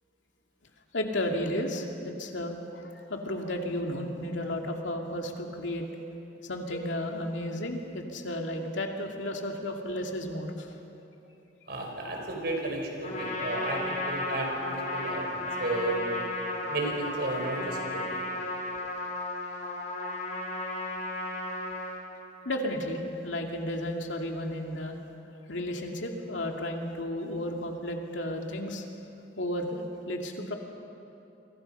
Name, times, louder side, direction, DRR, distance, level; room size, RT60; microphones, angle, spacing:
voice 1, 0.9-5.9 6.4-10.7 17.3-17.5 17.9-18.0 18.8-18.9 22.4-25.0 25.5-28.8 29.4-30.5, left 1 dB, 80° left, 2 dB, 2.6 m, -33 dB
voice 2, 11.7-16.2 16.7-18.2, right 2 dB, 60° right, 1 dB, 5.0 m, -33 dB
Trumpet, 13.0-22.0, left 1 dB, 40° left, 4.4 m, -34 dB
29.5 x 24.0 x 5.7 m, 2.9 s
head